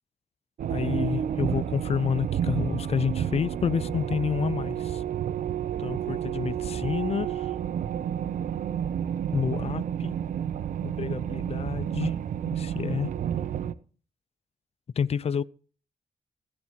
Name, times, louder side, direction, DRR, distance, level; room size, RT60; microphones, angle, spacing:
sound 1, 0.6-13.7, right 9 dB, 80° right, 0.7 m, -30 dB
voice 1, 0.7-5.0 5.8-7.5 9.3-10.1 10.8-12.1 12.5-13.1 15.0-15.4, left 7 dB, 50° left, 0.6 m, -29 dB
16.5 x 9.6 x 4.6 m
cardioid pair, 75°, 13 cm